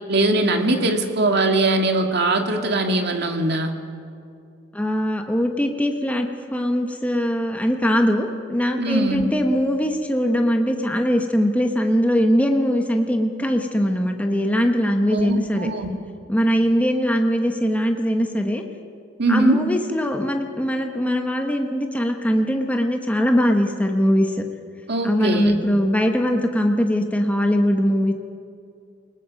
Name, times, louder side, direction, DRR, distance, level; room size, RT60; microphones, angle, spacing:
voice 1, 0.1-3.7 8.8-9.3 15.1-15.9 19.2-19.6 24.9-25.6, right 2 dB, 55° right, 4 dB, 2.0 m, -21 dB
voice 2, 4.7-15.7 16.3-18.6 19.3-24.4 25.0-28.1, equal, 5° left, 3 dB, 1.2 m, -21 dB
28.5 x 19.5 x 5.3 m, 2.4 s
head